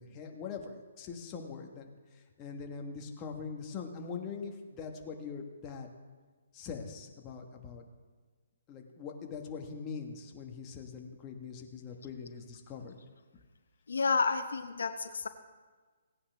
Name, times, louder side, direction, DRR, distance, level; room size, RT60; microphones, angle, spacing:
voice 1, 0.0-5.9 6.5-7.9 8.7-13.0, left 5 dB, 20° left, 2 dB, 1.3 m, -42 dB
voice 2, 13.9-15.3, left 4 dB, 85° left, 8 dB, 0.8 m, -30 dB
17.5 x 9.7 x 3.4 m, 1.4 s
hypercardioid pair, 160°, 0 cm